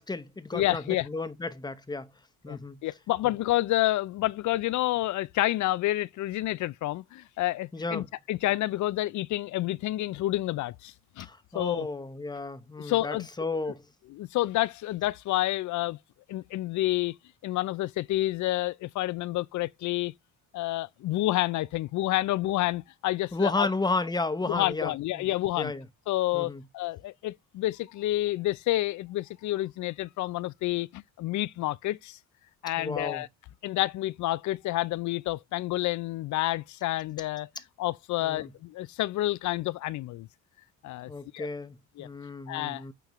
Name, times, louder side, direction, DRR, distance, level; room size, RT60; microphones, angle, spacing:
voice 1, 0.0-2.1 2.4-2.8 7.7-8.1 11.2-13.9 23.3-25.3 25.6-25.9 26.3-26.6 32.8-33.2 38.2-38.5 41.1-42.9, left 3 dB, 10° left, 0.9 m, -33 dB
voice 2, 0.5-1.1 2.5-11.3 11.5-11.9 12.8-13.3 14.1-16.0 16.3-17.1 17.4-20.1 20.5-23.7 24.5-25.7 26.1-32.2 32.6-33.3 33.6-37.5 37.8-40.3 40.8-41.5 42.0-42.1 42.5-42.8, left 16 dB, 60° left, 0.5 m, -29 dB
9.1 x 3.7 x 3.1 m
cardioid pair, 95°, 33 cm